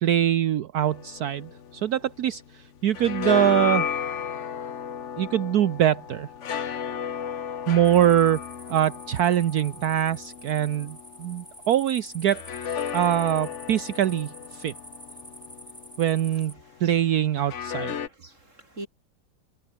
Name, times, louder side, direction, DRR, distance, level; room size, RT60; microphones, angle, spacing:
voice 1, 0.0-3.9 5.2-6.3 7.7-8.4 8.7-12.4 12.9-14.7 16.0-16.5 16.8-17.9, right 11 dB, 65° right, 1.3 m, -23 dB
sound 1, 0.8-2.5 2.8-11.5 12.3-16.4 17.4-18.1, left 8 dB, 50° left, 1.3 m, -34 dB
sound 2, 7.8-16.5, equal, 10° right, 7.8 m, -47 dB
voice 2, 16.3-17.2 17.6-18.9, right 1 dB, 45° right, 7.6 m, -46 dB
omnidirectional pair, 1.8 m